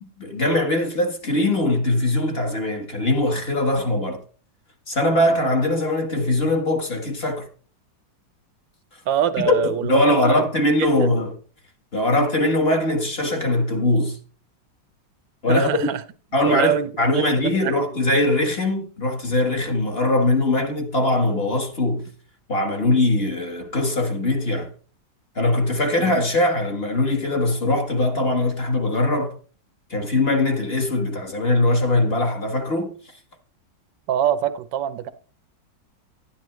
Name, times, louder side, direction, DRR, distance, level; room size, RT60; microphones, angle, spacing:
voice 1, 0.0-4.2 4.9-7.5 9.4-11.3 11.9-14.2 15.4-15.9 16.3-22.1 22.5-24.7 25.3-29.4 29.9-32.9, left 2 dB, 35° left, 1.5 m, -21 dB
voice 2, 9.1-11.1 15.5-16.0 16.5-17.8 26.0-26.1 34.1-35.1, right 10 dB, 85° right, 1.4 m, -25 dB
11.0 x 10.5 x 3.1 m
omnidirectional pair, 2.0 m